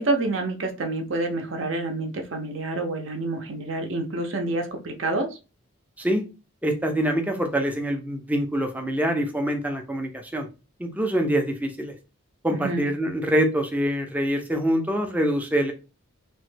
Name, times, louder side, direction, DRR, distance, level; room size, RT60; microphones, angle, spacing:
voice 1, 0.0-5.3 12.5-12.8, right 2 dB, 60° right, 4 dB, 0.6 m, -28 dB
voice 2, 6.6-10.5 10.8-11.9 12.4-15.7, equal, 5° right, 4 dB, 0.4 m, -25 dB
3.0 x 2.1 x 3.2 m, 0.31 s
head